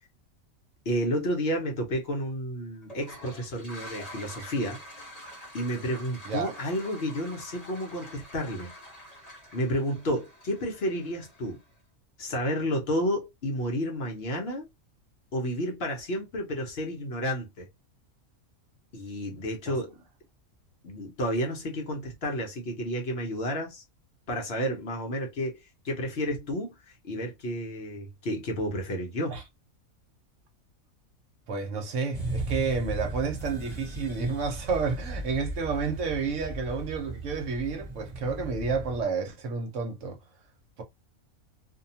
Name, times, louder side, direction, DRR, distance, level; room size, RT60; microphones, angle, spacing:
voice 1, 0.9-4.8 5.5-8.7 9.5-11.6 12.2-14.7 15.3-17.7 18.9-19.9 20.8-23.8 24.3-26.7 27.0-29.4, equal, 55° left, 0.9 m, -31 dB
Toilet flush, 2.8-11.7, equal, 30° left, 1.0 m, -46 dB
voice 2, 31.5-40.2, right 4 dB, 60° right, 1.1 m, -30 dB
sound 1, 32.1-39.0, right 2 dB, ahead, 1.1 m, -37 dB
2.7 x 2.3 x 2.7 m
omnidirectional pair, 1.5 m